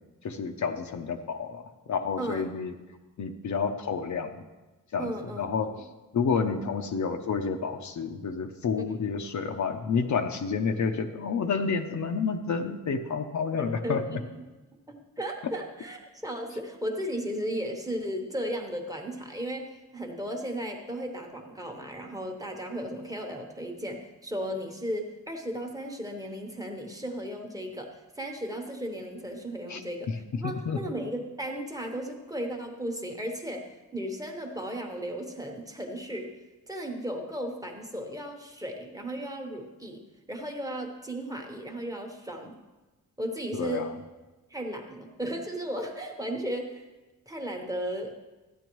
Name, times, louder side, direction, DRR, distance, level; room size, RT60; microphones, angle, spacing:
voice 1, 0.2-1.6 1.9-2.7 3.2-4.3 4.9-5.1 5.4-5.7 6.1-14.2 29.7-29.8 30.4-30.8 43.5-43.9, left 5 dB, 60° left, 5 dB, 0.6 m, -29 dB
voice 2, 5.0-5.8 13.6-14.4 14.9-36.4 36.7-40.0 40.3-42.5 43.2-43.9 44.5-46.8 47.3-48.1, equal, 10° right, 2 dB, 1.0 m, -35 dB
13.5 x 9.0 x 3.1 m, 1.2 s
wide cardioid pair, 170°, 33 cm